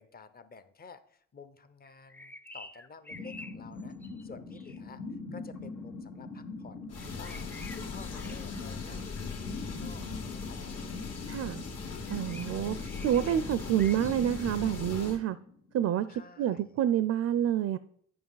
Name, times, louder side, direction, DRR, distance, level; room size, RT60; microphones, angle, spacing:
voice 1, 0.0-4.0 4.2-5.0 5.3-10.9 12.0-12.5 16.1-16.6, left 5 dB, 30° left, 11 dB, 0.7 m, -52 dB
sound 1, 1.8-4.8 7.0-9.0 12.1-14.2, left 2 dB, 5° left, 0.4 m, -49 dB
sound 2, 3.1-15.8, left 3 dB, 85° left, 2.1 m, -43 dB
sound 3, 6.9-15.2, left 4 dB, 55° left, 1.8 m, -40 dB
voice 2, 11.3-11.6 12.1-15.4 15.7-16.1 16.4-17.8, right 10 dB, 55° right, 14 dB, 0.4 m, -28 dB
9.5 x 5.5 x 3.9 m, 0.65 s
cardioid pair, 90°, 30 cm